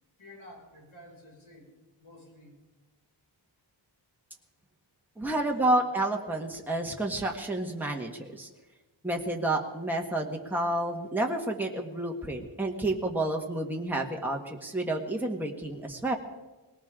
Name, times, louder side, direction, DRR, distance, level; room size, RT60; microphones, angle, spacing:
voice 1, 0.2-1.7 2.0-2.6 5.2-5.7, left 1 dB, 80° left, -1 dB, 6.1 m, -51 dB
voice 2, 5.2-8.5 9.0-16.2, right 1 dB, 5° right, 0 dB, 1.5 m, -30 dB
20.5 x 18.5 x 3.8 m, 1.2 s
wide cardioid pair, 115°, 47 cm